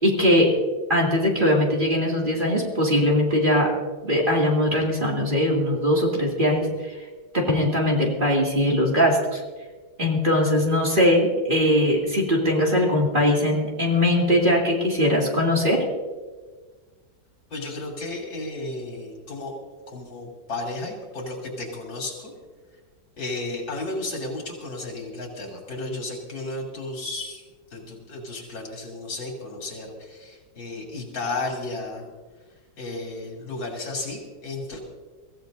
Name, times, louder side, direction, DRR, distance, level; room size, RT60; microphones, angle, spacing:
voice 1, 0.0-0.5 0.9-3.7 4.0-7.0 7.3-9.4 10.0-15.8, left 1 dB, 25° right, -2 dB, 2.6 m, -21 dB
voice 2, 17.5-19.6 19.9-22.3 23.2-32.1 32.8-34.8, left 2 dB, 90° left, -1 dB, 3.9 m, -33 dB
24.0 x 15.5 x 2.7 m, 1.4 s
omnidirectional pair, 2.0 m